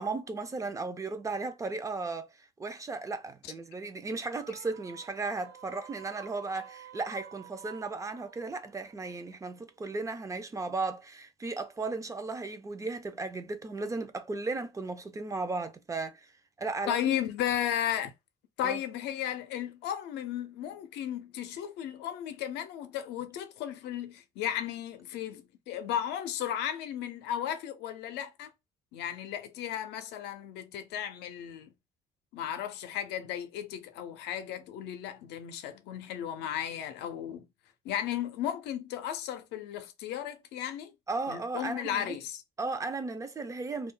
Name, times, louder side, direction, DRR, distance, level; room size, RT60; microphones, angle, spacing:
voice 1, 0.0-16.3 16.6-17.0 18.6-18.8 41.1-42.2 42.6-43.9, right 3 dB, 20° right, 0.4 m, -35 dB
sound 1, 4.3-9.8, right 9 dB, 80° right, 0.5 m, -51 dB
voice 2, 16.9-18.1 18.6-28.5 28.9-31.7 32.3-37.5 37.8-40.9 41.3-42.4, left 10 dB, 85° left, 0.5 m, -35 dB
2.3 x 2.1 x 3.7 m
cardioid pair, 110°, 17 cm